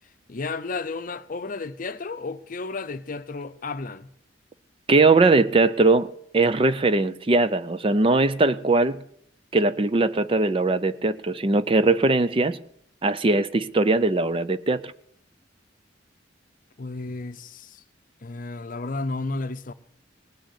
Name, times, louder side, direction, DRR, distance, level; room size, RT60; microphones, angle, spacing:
voice 1, 0.3-4.1 16.8-17.8 18.2-19.7, left 3 dB, 45° left, 0.6 m, -32 dB
voice 2, 4.9-6.1 6.3-9.0 9.5-12.6 13.0-14.9, right 3 dB, 30° right, 0.4 m, -20 dB
19.0 x 6.5 x 8.2 m
head